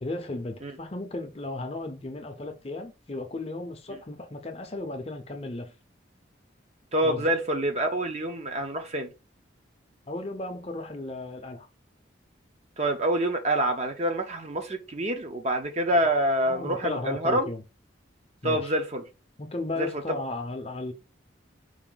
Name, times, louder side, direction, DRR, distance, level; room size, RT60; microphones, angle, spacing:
voice 1, 0.0-5.7 7.0-7.3 10.1-11.7 16.4-17.6 18.4-18.7 19.4-20.9, left 2 dB, 30° left, 0.6 m, -35 dB
voice 2, 6.9-9.1 12.8-17.5 18.4-19.0 19.8-19.9, right 1 dB, 35° right, 0.7 m, -26 dB
4.8 x 2.6 x 3.8 m
head